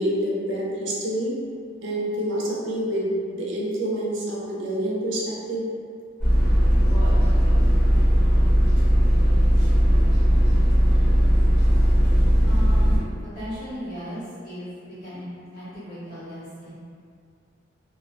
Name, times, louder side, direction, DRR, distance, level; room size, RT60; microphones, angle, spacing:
voice 1, 0.0-1.3 1.8-5.6, right 1 dB, 65° right, -5 dB, 0.5 m, -27 dB
sound 1, 6.2-13.0, equal, 10° left, 0.9 m, -18 dB
voice 2, 12.4-14.7 15.0-15.3 15.5-16.7, equal, 50° left, -13 dB, 1.2 m, -36 dB
2.3 x 2.1 x 2.5 m, 2.3 s
head